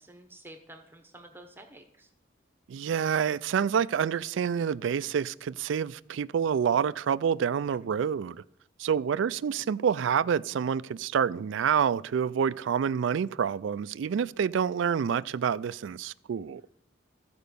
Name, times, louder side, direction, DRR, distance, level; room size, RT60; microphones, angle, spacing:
voice 1, 0.0-2.1, right 1 dB, 10° right, 0.8 m, -50 dB
voice 2, 2.7-8.4 8.8-16.6, right 7 dB, 70° right, 0.3 m, -28 dB
14.5 x 5.1 x 6.8 m
head